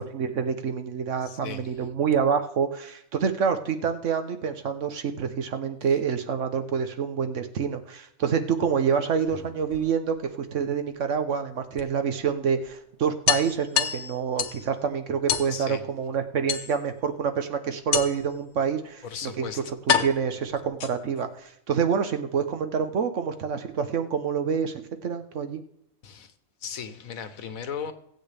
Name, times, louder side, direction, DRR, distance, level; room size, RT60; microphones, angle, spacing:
voice 1, 0.0-19.5 20.0-25.6, right 6 dB, 65° right, 8 dB, 1.2 m, -27 dB
voice 2, 1.2-1.8 5.8-6.0 15.5-15.9 19.0-19.7 26.0-26.3 26.6-27.9, left 7 dB, 80° left, 10 dB, 1.4 m, -37 dB
sound 1, 9.1-10.3 11.8-11.9 12.3-12.4 12.7-12.8 13.3-14.7 15.3-15.5 16.5-17.0 17.9-18.4 19.2-19.3 19.9-21.2, left 8 dB, 65° left, 1.2 m, -27 dB
22.5 x 8.0 x 3.4 m, 0.75 s
omnidirectional pair, 1.4 m